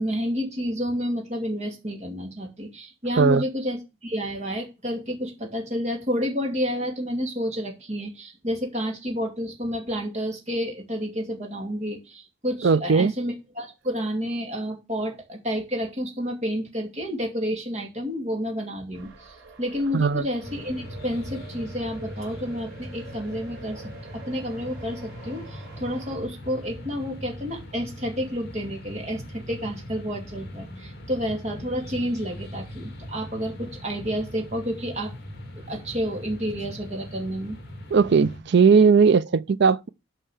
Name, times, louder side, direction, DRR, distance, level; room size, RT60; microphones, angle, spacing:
voice 1, 0.0-19.3 19.6-23.8 24.1-29.2 29.5-35.1 35.7-37.6, equal, 30° right, 2.6 m, -30 dB
voice 2, 12.6-13.1 19.9-20.2 37.9-39.9, right 5 dB, 55° right, 0.4 m, -18 dB
sound 1, 18.9-26.2, right 3 dB, 80° right, 3.4 m, -46 dB
sound 2, 20.4-38.4, equal, 50° left, 2.5 m, -40 dB
9.0 x 5.7 x 6.4 m
head